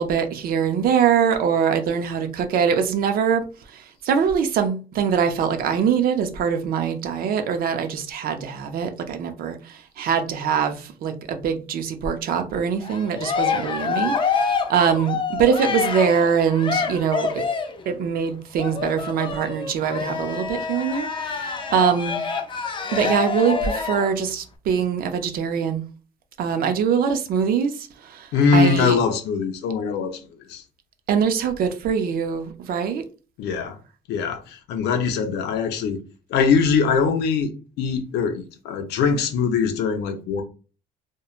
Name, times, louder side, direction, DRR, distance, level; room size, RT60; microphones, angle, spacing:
voice 1, 0.0-3.4 3.7-17.4 17.9-22.2 22.9-25.8 26.4-29.0 31.1-33.0, right 7 dB, 60° right, 0.5 m, -23 dB
Cheering, 12.8-17.8 18.6-24.1, left 5 dB, 30° left, 0.4 m, -27 dB
voice 2, 28.3-30.6 33.4-33.8 34.1-36.0 36.3-37.5 37.8-40.4, left 5 dB, 80° left, 0.5 m, -22 dB
2.9 x 2.2 x 2.4 m
cardioid pair, 110°, 17 cm